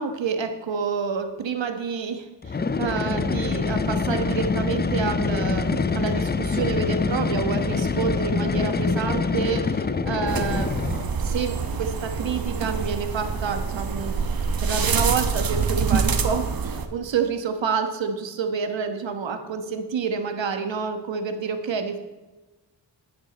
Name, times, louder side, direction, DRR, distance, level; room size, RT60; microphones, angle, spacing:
voice 1, 0.0-10.7 11.1-14.2 14.6-22.0, right 6 dB, 70° right, 7 dB, 1.3 m, -28 dB
sound 1, 2.4-11.2, left 4 dB, 25° left, 0.4 m, -25 dB
sound 2, 10.3-16.9, right 5 dB, 50° right, 1.0 m, -26 dB
10.0 x 9.5 x 4.2 m, 1.1 s
wide cardioid pair, 95°, 46 cm